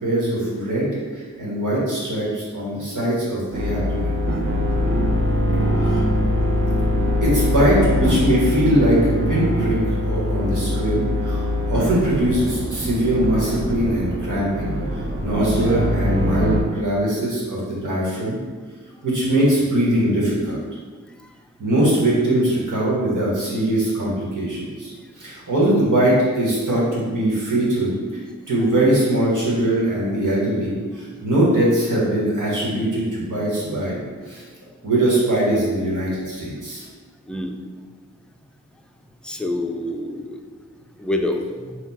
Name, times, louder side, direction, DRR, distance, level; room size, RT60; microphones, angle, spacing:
voice 1, 0.0-4.1 5.7-6.1 7.2-18.4 19.0-20.6 21.6-27.9 28.5-34.4 34.8-36.8, right 1 dB, 85° right, -6 dB, 1.4 m, -21 dB
sound 1, 3.5-16.6, left 1 dB, 45° right, 0.8 m, -22 dB
voice 2, 39.2-40.4 41.0-41.8, left 1 dB, 5° left, 3 dB, 0.4 m, -26 dB
4.4 x 2.4 x 4.1 m, 1.4 s
cardioid pair, 45°, 30 cm